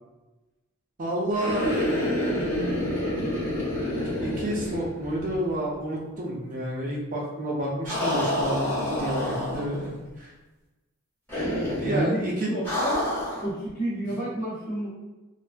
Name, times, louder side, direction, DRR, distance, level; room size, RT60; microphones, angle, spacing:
voice 1, 1.0-1.6 4.2-9.9 10.2-10.3 11.8-12.5, right 1 dB, 35° right, -3 dB, 0.4 m, -29 dB
sound 1, 1.3-5.5 5.7-5.8 7.8-9.9 11.3-12.0 12.6-13.5, left 1 dB, 10° left, 0.7 m, -28 dB
voice 2, 11.8-14.9, equal, 40° left, -7 dB, 0.9 m, -30 dB
2.4 x 2.2 x 2.5 m, 1.1 s
head